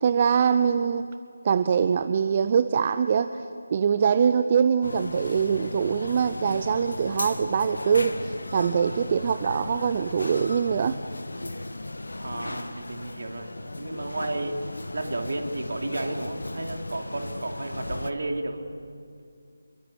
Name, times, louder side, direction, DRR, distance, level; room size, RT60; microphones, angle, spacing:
voice 1, 0.0-1.1 1.4-3.4 3.7-11.0, right 7 dB, 25° right, 11 dB, 0.6 m, -23 dB
sound 1, 4.8-18.1, left 2 dB, 60° left, 1.7 m, -36 dB
voice 2, 12.2-13.5 13.7-14.6 14.9-18.6, right 2 dB, 50° right, 3 dB, 3.1 m, -32 dB
28.0 x 23.0 x 8.3 m, 2.3 s
figure-of-eight pair, 160°, 0 cm